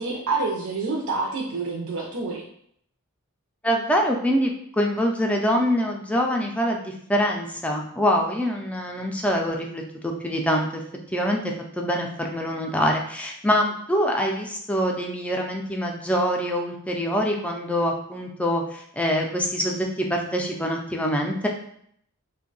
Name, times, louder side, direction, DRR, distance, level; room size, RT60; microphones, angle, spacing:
voice 1, 0.0-2.5, right 3 dB, 75° right, -3 dB, 0.6 m, -27 dB
voice 2, 3.6-10.8 11.1-21.5, equal, 5° left, 1 dB, 0.4 m, -25 dB
2.6 x 2.2 x 3.9 m, 0.68 s
head